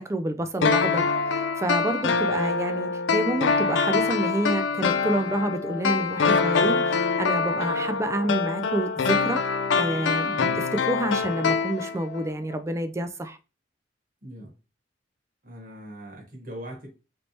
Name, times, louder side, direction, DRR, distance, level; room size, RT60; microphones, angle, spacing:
voice 1, 0.0-9.4 9.8-10.5 10.9-13.4, right 1 dB, 15° right, 0.3 m, -28 dB
sound 1, 0.6-12.3 12.5-12.6, left 5 dB, 85° left, 0.4 m, -25 dB
voice 2, 14.2-14.5 15.4-16.9, equal, 50° right, 1.1 m, -40 dB
3.2 x 3.0 x 2.7 m
head